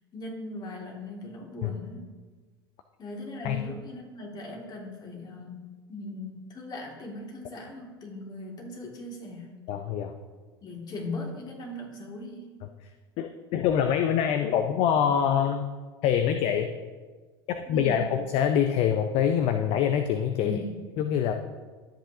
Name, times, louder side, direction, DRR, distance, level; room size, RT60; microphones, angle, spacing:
voice 1, 0.1-2.1 3.0-9.6 10.6-12.6 17.7-18.1 20.4-20.8, left 2 dB, 35° left, 0 dB, 2.3 m, -39 dB
voice 2, 9.7-10.1 13.2-15.6 16.0-16.7 17.5-20.6 21.0-21.3, left 8 dB, 50° left, 7 dB, 0.6 m, -25 dB
13.0 x 7.6 x 2.8 m, 1.4 s
hypercardioid pair, 80°, 13 cm